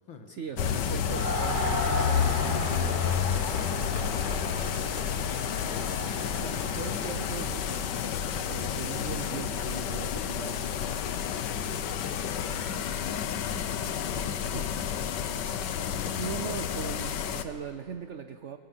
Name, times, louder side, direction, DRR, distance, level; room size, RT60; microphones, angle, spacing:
voice 1, 0.3-3.0 6.4-7.9 8.3-10.7 14.5-14.7 16.1-18.6, right 7 dB, 80° right, 10 dB, 0.6 m, -40 dB
sound 1, 0.6-17.4, left 8 dB, 65° left, 1.4 m, -30 dB
Crowd, 1.0-7.6, left 1 dB, 25° left, 2.8 m, -35 dB
voice 2, 6.2-6.9 11.5-11.9, left 5 dB, 85° left, 5 dB, 2.6 m, -48 dB
22.5 x 17.5 x 7.8 m, 2.1 s
omnidirectional pair, 2.1 m